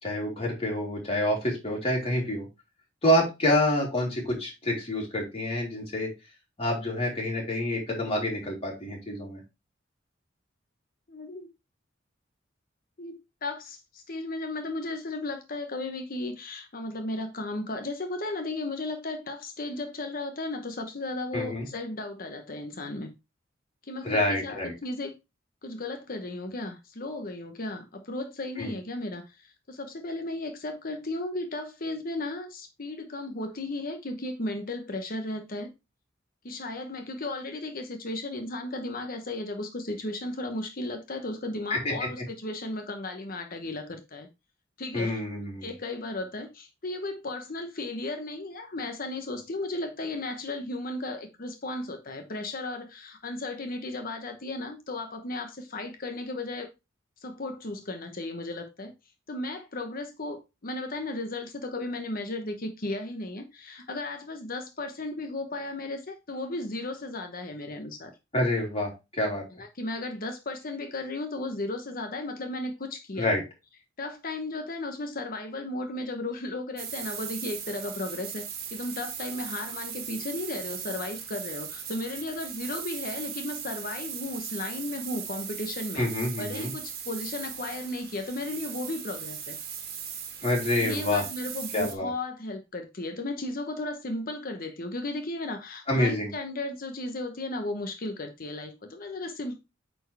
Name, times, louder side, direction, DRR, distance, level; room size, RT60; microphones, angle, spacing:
voice 1, 0.0-2.5 3.0-6.1 6.6-9.4 21.3-21.7 24.0-24.7 28.6-28.7 41.7-42.2 44.9-45.7 68.3-69.4 73.2-73.4 86.0-86.7 90.4-91.2 91.7-92.1 95.9-96.3, left 1 dB, 30° left, 3.5 m, -27 dB
voice 2, 11.1-11.5 13.0-23.1 23.8-25.1 25.6-35.7 36.4-44.3 44.8-45.2 45.6-56.7 57.2-58.9 59.3-68.1 69.6-73.4 74.0-86.1 86.4-89.6 90.8-99.6, left 2 dB, 50° left, 1.1 m, -35 dB
sound 1, 76.8-91.9, right 8 dB, 55° right, 1.7 m, -38 dB
8.9 x 4.5 x 3.4 m
head